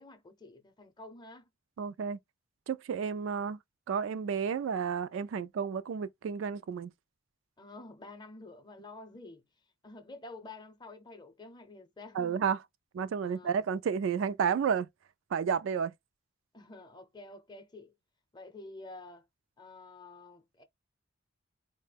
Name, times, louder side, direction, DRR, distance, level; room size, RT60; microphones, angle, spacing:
voice 1, 0.0-1.5 7.6-12.4 13.2-13.6 16.5-17.9 18.3-19.3 19.6-20.6, left 2 dB, 20° left, 0.6 m, -49 dB
voice 2, 1.8-2.2 2.7-3.6 3.9-6.9 12.2-12.6 12.9-14.9 15.3-15.9, right 7 dB, 65° right, 0.3 m, -31 dB
4.2 x 2.1 x 3.3 m
head